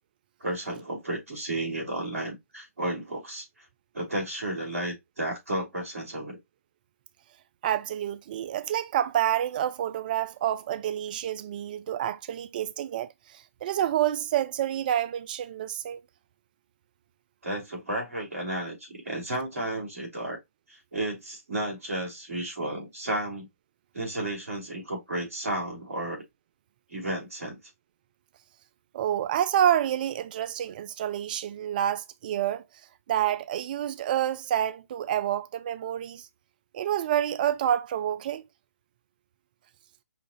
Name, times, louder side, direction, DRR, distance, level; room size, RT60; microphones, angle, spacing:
voice 1, 0.4-3.4 3.9-6.4 17.4-20.4 20.9-23.5 23.9-26.2 26.9-27.6, right 1 dB, 75° right, 3.2 m, -32 dB
voice 2, 7.6-16.0 28.9-32.6 33.1-36.3 36.7-38.4, right 11 dB, 35° right, 0.3 m, -28 dB
5.7 x 2.5 x 2.9 m
figure-of-eight pair, 135°, 8 cm